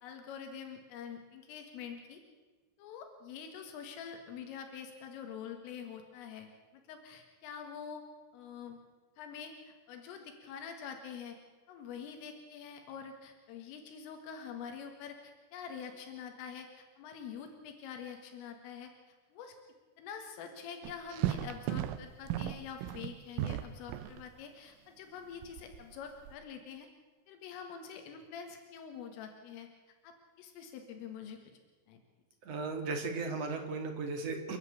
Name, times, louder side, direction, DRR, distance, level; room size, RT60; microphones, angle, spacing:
voice 1, 0.0-2.2 2.8-6.5 6.7-8.0 8.3-8.8 9.2-11.4 11.7-18.9 19.3-19.6 20.0-26.9 27.3-29.7 30.0-31.4 31.9-32.0, left 7 dB, 85° left, 5 dB, 4.3 m, -46 dB
sound 1, 20.8-24.2 25.4-26.3, right 12 dB, 85° right, 3.4 m, -36 dB
voice 2, 32.4-34.6, right 3 dB, 45° right, 5 dB, 2.2 m, -36 dB
30.0 x 11.0 x 8.4 m, 1.3 s
omnidirectional pair, 5.7 m